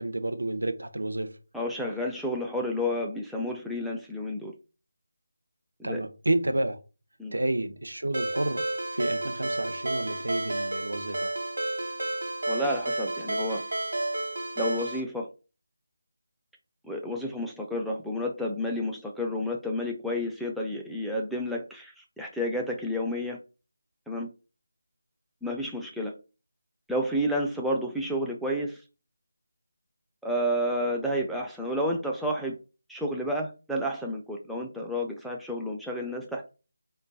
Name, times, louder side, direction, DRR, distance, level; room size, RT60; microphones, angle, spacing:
voice 1, 0.0-1.4 5.8-6.8 7.3-8.6 8.9-11.3, right 1 dB, 85° right, 0.6 m, -30 dB
voice 2, 1.5-4.5 5.8-6.0 7.2-7.3 12.5-13.6 14.6-15.3 16.8-23.4 24.1-24.3 25.4-26.1 26.9-28.8 30.2-32.6 32.9-36.5, equal, ahead, 0.3 m, -30 dB
Ringtone, 8.1-15.0, right 2 dB, 65° right, 1.1 m, -31 dB
3.1 x 2.2 x 3.9 m
figure-of-eight pair, 165°, 0 cm